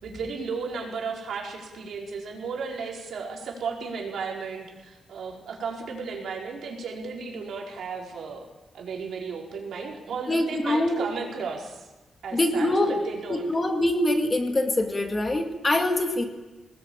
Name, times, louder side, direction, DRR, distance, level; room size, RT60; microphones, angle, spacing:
voice 1, 0.0-8.5 8.7-11.9 12.2-13.5, right 5 dB, 75° right, -1 dB, 4.8 m, -34 dB
voice 2, 10.3-11.0 12.3-13.0 13.3-16.2, left 1 dB, 20° left, 4 dB, 2.1 m, -24 dB
23.5 x 19.5 x 8.9 m, 1.2 s
wide cardioid pair, 170°, 0 cm